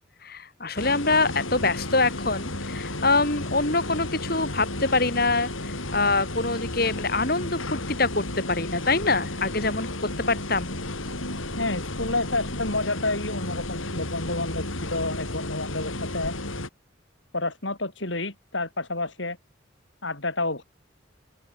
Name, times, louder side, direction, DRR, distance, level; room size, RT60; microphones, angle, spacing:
voice 1, 0.2-7.6 7.9-9.9 10.3-10.8, left 3 dB, 50° left, 4.4 m, -25 dB
sound 1, 0.8-16.7, left 1 dB, 85° left, 7.3 m, -33 dB
voice 2, 11.6-16.4 17.3-19.4 20.0-20.6, left 2 dB, 70° left, 7.6 m, -29 dB
open air
head